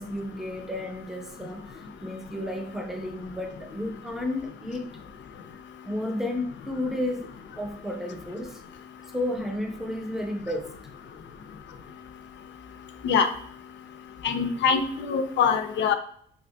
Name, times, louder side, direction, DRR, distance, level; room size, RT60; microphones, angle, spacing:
voice 1, 0.0-4.9 5.8-7.3 7.6-8.6 9.1-10.7, left 1 dB, ahead, 3 dB, 0.7 m, -32 dB
voice 2, 14.2-15.9, left 6 dB, 65° left, 7 dB, 0.5 m, -23 dB
5.4 x 2.5 x 2.2 m, 0.64 s
cardioid pair, 90°, 20 cm